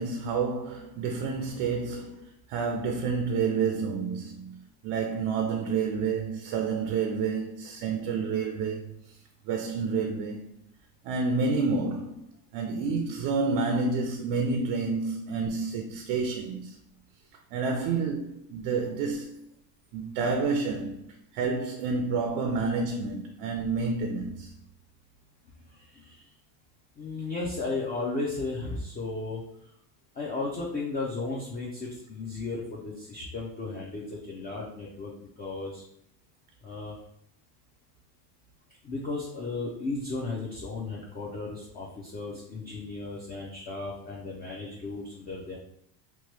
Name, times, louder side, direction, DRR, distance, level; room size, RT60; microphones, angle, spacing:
voice 1, 0.0-9.0 9.5-10.5 11.0-12.2 12.5-16.8 17.5-19.3 19.9-21.0 21.3-24.5, right 4 dB, 65° right, 0.5 m, -29 dB
voice 2, 25.7-26.2 27.0-29.4 30.2-35.8 36.6-37.0 38.8-45.6, left 3 dB, 20° left, 0.3 m, -35 dB
3.0 x 2.1 x 3.1 m
cardioid pair, 125°, 46 cm